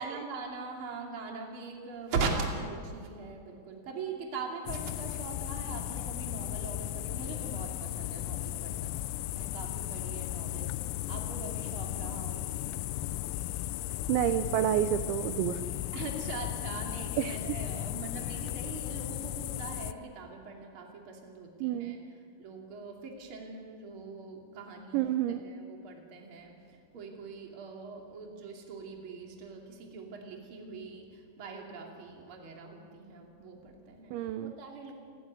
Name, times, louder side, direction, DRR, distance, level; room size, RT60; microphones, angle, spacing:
voice 1, 0.0-9.0 9.3-12.5 15.9-22.0 22.4-34.9, right 4 dB, 35° right, 1 dB, 2.5 m, -41 dB
sound 1, 4.7-19.9, left 15 dB, 90° left, 3.4 m, -36 dB
voice 2, 14.1-15.6 17.2-17.4 21.6-22.0 24.9-25.4 34.1-34.5, right 12 dB, 80° right, 10 dB, 2.8 m, -29 dB
27.5 x 12.0 x 9.6 m, 2.3 s
omnidirectional pair, 5.9 m